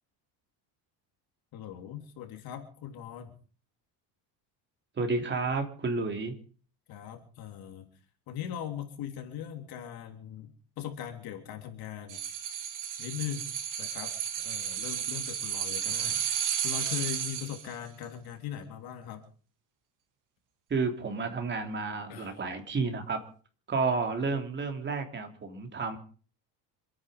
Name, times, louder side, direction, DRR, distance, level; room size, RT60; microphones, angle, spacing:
voice 1, 1.5-3.3 6.9-7.9 8.3-12.2 13.0-13.4 13.8-19.2 22.1-22.4, left 10 dB, 55° left, 4 dB, 3.4 m, -40 dB
voice 2, 5.0-6.3 20.7-23.2 23.7-26.0, right 4 dB, 25° right, 5 dB, 3.3 m, -31 dB
sound 1, 12.1-17.7 18.0-18.1, right 8 dB, 45° right, 2.9 m, -33 dB
26.5 x 9.9 x 5.2 m, 0.41 s
cardioid pair, 140°, 42 cm